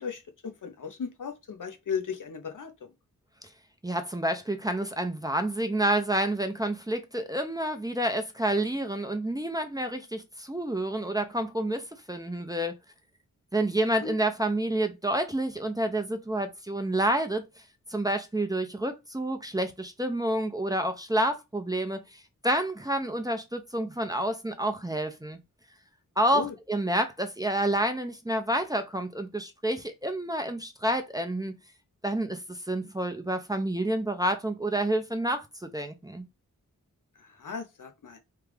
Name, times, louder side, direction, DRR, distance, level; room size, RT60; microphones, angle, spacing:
voice 1, 0.0-2.7 14.0-14.1 26.3-26.5 37.2-38.2, left 6 dB, 70° left, 0.8 m, -36 dB
voice 2, 3.8-12.7 13.5-17.4 17.9-25.4 26.2-31.6 32.0-36.3, right 1 dB, 10° right, 0.6 m, -29 dB
3.4 x 2.4 x 3.3 m
cardioid pair, 50°, 33 cm